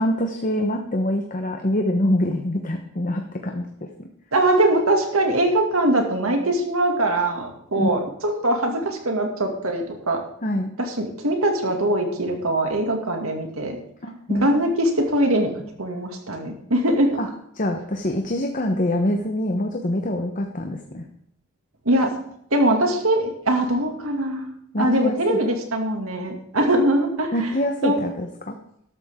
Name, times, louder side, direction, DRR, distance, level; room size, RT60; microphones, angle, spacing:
voice 1, 0.0-4.1 7.8-7.9 10.4-10.7 14.0-14.6 17.2-17.3 17.6-21.1 24.7-25.4 27.3-28.6, left 1 dB, 40° left, 4 dB, 1.1 m, -25 dB
voice 2, 4.3-10.2 10.8-13.8 14.3-17.2 21.9-22.1 22.5-27.5 27.8-28.0, right 1 dB, 90° right, 3 dB, 2.4 m, -22 dB
13.0 x 12.5 x 3.8 m, 0.72 s
head